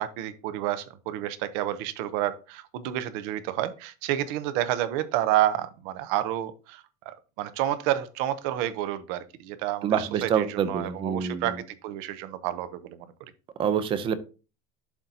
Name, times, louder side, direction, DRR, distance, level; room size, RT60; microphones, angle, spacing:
voice 1, 0.0-13.0, right 13 dB, 55° right, 13 dB, 0.8 m, -30 dB
voice 2, 9.8-11.5 13.6-14.2, right 8 dB, 25° right, 13 dB, 0.6 m, -26 dB
11.5 x 3.9 x 2.8 m, 0.33 s
cardioid pair, 170°, 20 cm